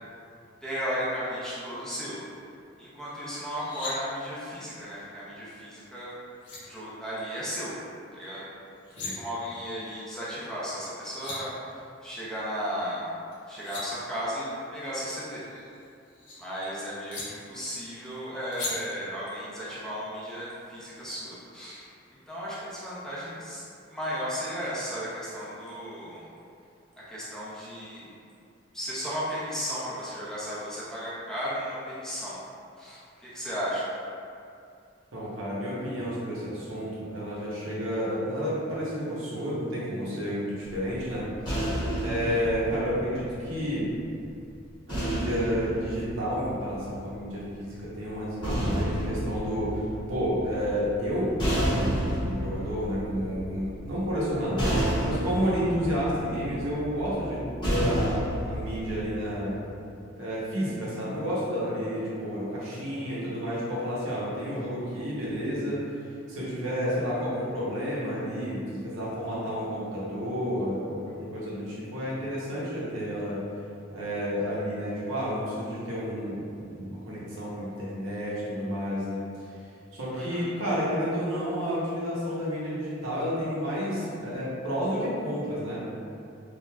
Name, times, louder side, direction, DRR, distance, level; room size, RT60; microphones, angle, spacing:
voice 1, 0.6-2.2 2.8-6.1 6.6-7.7 8.1-8.4 9.0-13.1 13.5-15.4 16.4-21.8 22.3-23.6 23.9-26.3 27.1-28.1 28.7-32.3 32.8-33.9 42.2-42.5 80.1-80.5, equal, 5° left, -10 dB, 0.5 m, -35 dB
sound 1, 3.4-3.9 6.0-6.1 6.4-6.6 8.7-9.1 10.8-10.9 11.0-11.4 13.3-13.8 15.3-16.4 17.1-17.2 18.5-18.7, left 3 dB, 60° left, 0.8 m, -38 dB
voice 2, 35.1-41.7 42.0-43.9 44.9-54.7 55.0-59.6 60.2-65.8 66.3-73.4 73.9-79.2 79.9-85.8, equal, 85° right, -7 dB, 0.8 m, -31 dB
sound 2, 40.7-44.0 44.9-47.2 48.1-59.2, right 1 dB, 25° left, 0.8 m, -31 dB
3.0 x 2.4 x 2.2 m, 2.5 s
head